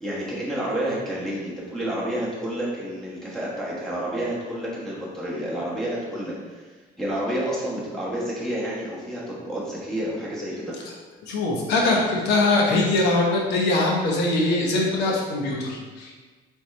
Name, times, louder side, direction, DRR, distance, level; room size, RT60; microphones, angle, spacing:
voice 1, 0.0-6.7 7.0-10.8, right 1 dB, 5° left, -7 dB, 1.3 m, -29 dB
voice 2, 11.3-16.1, left 2 dB, 85° left, -1 dB, 0.9 m, -22 dB
4.1 x 3.4 x 3.2 m, 1.4 s
cardioid pair, 110°, 17 cm